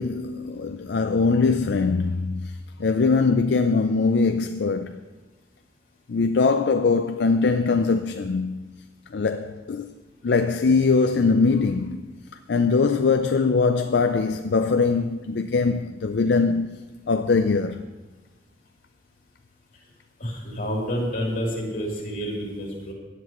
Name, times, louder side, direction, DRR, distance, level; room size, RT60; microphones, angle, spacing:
voice 1, 0.0-2.5 2.8-5.0 6.1-8.7 9.1-9.9 10.2-12.0 12.5-16.8 17.1-17.8, left 4 dB, 70° left, 0.4 m, -22 dB
voice 2, 20.2-22.9, equal, 50° left, 3.2 m, -29 dB
16.5 x 10.0 x 3.0 m
head